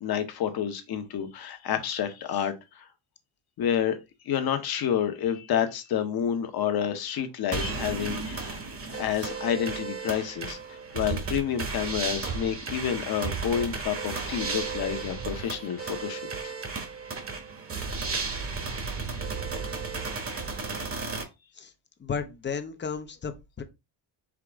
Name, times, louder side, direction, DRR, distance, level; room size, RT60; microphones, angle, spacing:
voice 1, 0.0-2.9 3.6-4.0 4.2-8.6 9.0-10.6 10.9-16.5, left 9 dB, 50° left, 1.0 m, -29 dB
sound 1, 7.5-21.2, right 4 dB, 30° right, 1.1 m, -34 dB
voice 2, 22.0-23.6, left 6 dB, 25° left, 0.6 m, -34 dB
4.9 x 2.9 x 3.5 m
cardioid pair, 125°, 47 cm